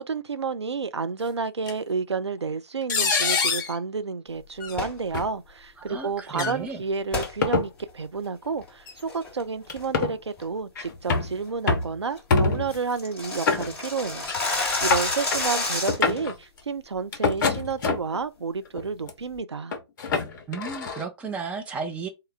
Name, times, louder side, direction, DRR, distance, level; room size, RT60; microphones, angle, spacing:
voice 1, 0.0-19.7, right 5 dB, 85° right, 0.5 m, -30 dB
sound 1, 1.7-1.8 2.9-3.7 4.6-4.8 5.1-5.3 6.3-6.6 7.2-7.7 8.9-9.0 9.7-10.2 10.8-11.3 11.7-11.9 12.3-12.8 13.5-14.0 14.3-14.4 14.7-15.4 15.8-16.3 17.1-18.2 18.8-19.1 19.7-21.0, left 4 dB, 45° left, 0.8 m, -25 dB
Pouring Cereal, 4.7-5.0 7.1-7.3 7.8-7.9 8.4-8.7 9.1-9.4 9.8-10.0 10.4-10.5 10.9-11.1 11.5-11.6 11.9-12.0 12.2-12.3 12.5-16.2, left 2 dB, 10° left, 1.2 m, -29 dB
voice 2, 5.8-6.8 20.5-22.1, right 5 dB, 10° right, 0.6 m, -34 dB
3.7 x 2.2 x 3.4 m
figure-of-eight pair, 135°, 14 cm